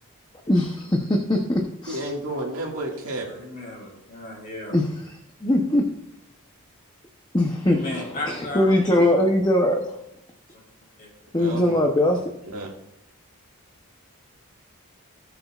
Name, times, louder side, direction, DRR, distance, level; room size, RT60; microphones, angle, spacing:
voice 1, 0.5-2.0 4.7-5.2 5.4-5.8 7.3-7.8 8.3-9.9 11.3-12.2, left 1 dB, 20° left, 2 dB, 0.8 m, -21 dB
voice 2, 1.9-3.3 11.3-11.8 12.5-12.7, right 1 dB, 70° right, -1 dB, 2.0 m, -31 dB
voice 3, 3.3-4.7 7.7-9.4 11.0-11.1, left 1 dB, 40° left, -2 dB, 3.8 m, -35 dB
18.0 x 6.8 x 2.4 m, 0.81 s
head